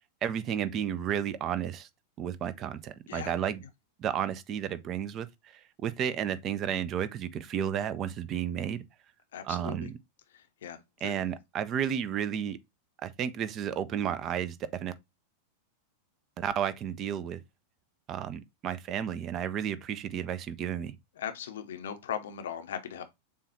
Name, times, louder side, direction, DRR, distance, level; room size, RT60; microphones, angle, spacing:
voice 1, 0.2-1.9 2.2-3.6 4.0-5.3 5.8-8.8 9.4-10.0 11.0-12.6 13.0-14.6 14.8-14.9 16.4-17.4 18.1-20.9, right 9 dB, 30° right, 0.5 m, -32 dB
voice 2, 9.3-9.9 10.3-11.2 21.2-23.0, left 9 dB, 60° left, 0.6 m, -39 dB
6.9 x 2.3 x 2.8 m
figure-of-eight pair, 90°, 0 cm